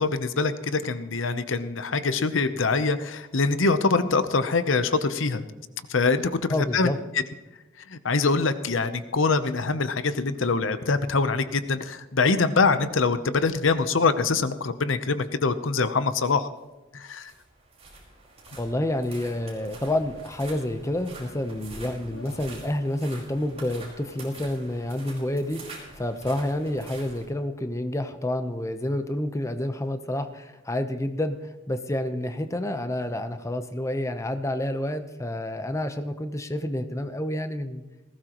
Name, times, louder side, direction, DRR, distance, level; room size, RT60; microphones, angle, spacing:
voice 1, 0.0-5.4 5.9-6.9 7.9-16.5 17.0-17.3, left 4 dB, 70° left, 11 dB, 0.8 m, -24 dB
voice 2, 6.5-7.0 18.6-25.6 25.9-37.8, left 1 dB, 15° left, 8 dB, 0.8 m, -29 dB
sound 1, 17.0-27.2, right 2 dB, 30° right, 5.0 m, -46 dB
19.5 x 17.0 x 3.0 m, 1.1 s
head